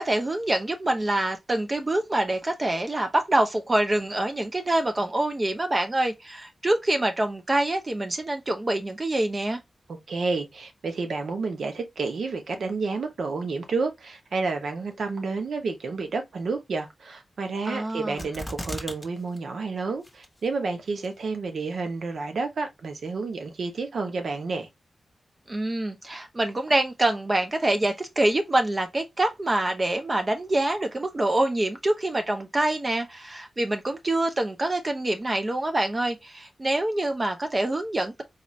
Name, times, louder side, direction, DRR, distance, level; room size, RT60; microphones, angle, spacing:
voice 1, 0.0-9.6 17.7-18.2 25.5-38.2, right 1 dB, 30° right, 0.6 m, -25 dB
voice 2, 10.1-24.7, right 4 dB, 80° right, 0.9 m, -30 dB
sound 1, 18.2-19.1 19.4-19.5 20.0-20.5 21.0-21.1, equal, 5° left, 1.1 m, -35 dB
4.1 x 2.5 x 3.1 m
wide cardioid pair, 80°, 0 cm